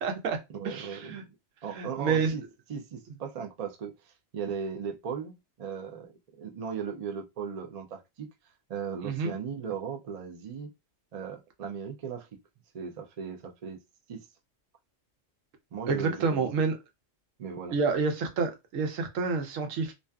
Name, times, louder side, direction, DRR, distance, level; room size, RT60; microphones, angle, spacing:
voice 1, 0.0-0.4 0.6-1.2 1.7-2.3 9.0-9.3 15.9-16.7 17.7-19.9, right 5 dB, 85° right, 1.0 m, -28 dB
voice 2, 0.5-1.4 1.6-2.4 2.7-6.1 6.4-8.3 8.7-10.7 11.1-12.3 12.7-13.8 14.1-14.3 15.7-16.5 17.4-17.8, right 6 dB, 60° right, 0.4 m, -37 dB
2.5 x 2.4 x 2.2 m
omnidirectional pair, 1.3 m